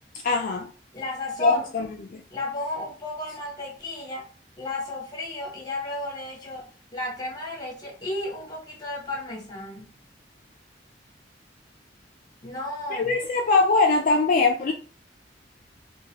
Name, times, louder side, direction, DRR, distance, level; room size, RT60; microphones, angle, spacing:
voice 1, 0.2-0.7 1.4-2.2 12.9-14.7, left 3 dB, 50° left, 0.3 m, -22 dB
voice 2, 0.9-1.7 2.3-4.3 4.6-9.9 12.4-13.1, left 2 dB, 20° left, 0.9 m, -33 dB
2.9 x 2.2 x 2.8 m
head